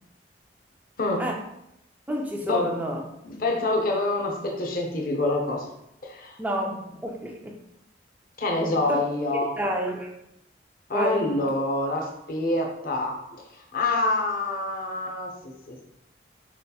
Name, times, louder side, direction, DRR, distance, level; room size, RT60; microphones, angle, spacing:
voice 1, 2.1-3.1 6.4-7.6 8.9-9.0 9.6-10.1 10.9-11.3, equal, 10° right, 1 dB, 0.3 m, -29 dB
voice 2, 3.2-5.7 6.0-6.4 8.4-9.5 10.9-13.2 13.7-15.8, left 2 dB, 45° left, 1 dB, 0.6 m, -26 dB
4.3 x 2.7 x 2.3 m, 0.82 s
head